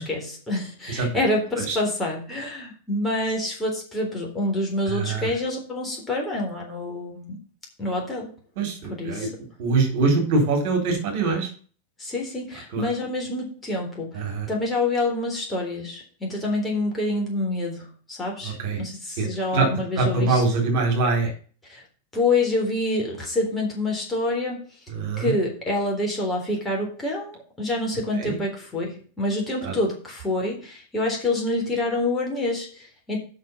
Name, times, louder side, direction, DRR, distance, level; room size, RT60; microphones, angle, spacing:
voice 1, 0.0-7.4 7.8-8.3 8.9-9.3 12.0-20.4 21.7-21.8 22.1-24.6 25.2-33.2, left 2 dB, 10° left, -2 dB, 3.7 m, -27 dB
voice 2, 4.9-5.3 8.6-9.3 9.6-11.5 12.7-12.9 14.1-14.5 18.4-18.8 19.2-19.3 19.5-19.7 20.0-21.3 24.9-25.3 28.2-28.4 29.6-29.7, right 3 dB, 50° right, 2 dB, 3.9 m, -23 dB
7.6 x 6.4 x 7.0 m, 0.40 s
figure-of-eight pair, 90°, 0 cm